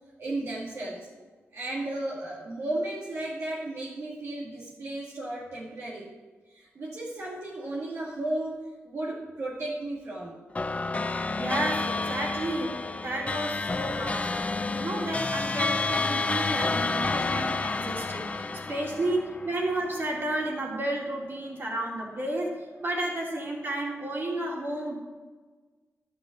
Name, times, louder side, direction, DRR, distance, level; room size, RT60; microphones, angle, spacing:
voice 1, 0.2-1.1 1.5-6.1 6.5-10.4 24.5-24.6, right 2 dB, 70° right, -6 dB, 2.4 m, -34 dB
sound 1, 10.5-20.2, left 3 dB, 30° left, 0.6 m, -30 dB
voice 2, 11.1-22.5 22.8-25.0, right 1 dB, 50° right, -3 dB, 3.4 m, -32 dB
12.0 x 11.0 x 4.0 m, 1.3 s
wide cardioid pair, 85°, 5 cm